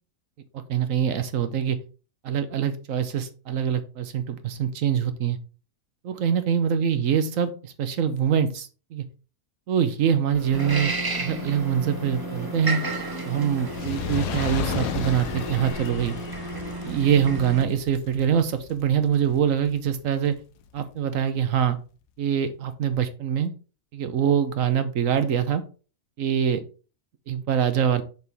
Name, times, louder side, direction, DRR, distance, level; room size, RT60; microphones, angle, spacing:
voice 1, 0.5-1.8 2.2-5.4 6.0-9.0 9.7-10.9 11.2-12.8 13.2-16.2 16.8-20.4 20.7-21.8 22.2-23.5 23.9-25.6 26.2-26.6 27.3-28.0, right 8 dB, 65° right, 10 dB, 1.0 m, -24 dB
sound 1, 10.3-15.7, left 1 dB, 65° left, 2.5 m, -40 dB
sound 2, 10.5-17.6, right 2 dB, 35° right, 0.3 m, -33 dB
Fire, 13.6-20.0 20.7-20.8, left 7 dB, 90° left, 1.2 m, -34 dB
6.6 x 4.3 x 3.4 m, 0.35 s
omnidirectional pair, 1.7 m